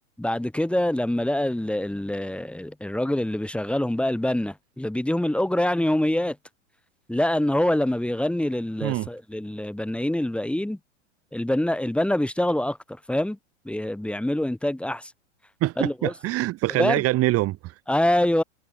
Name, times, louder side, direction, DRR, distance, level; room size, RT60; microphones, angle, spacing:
voice 1, 0.2-6.4 7.1-10.8 11.3-12.8 13.1-13.4 13.7-15.1 15.8-16.1 16.7-17.0 17.9-18.4, left 1 dB, 5° left, 3.9 m, -25 dB
voice 2, 15.6-17.7, right 17 dB, 40° right, 2.5 m, -24 dB
hypercardioid pair, 100°, 37 cm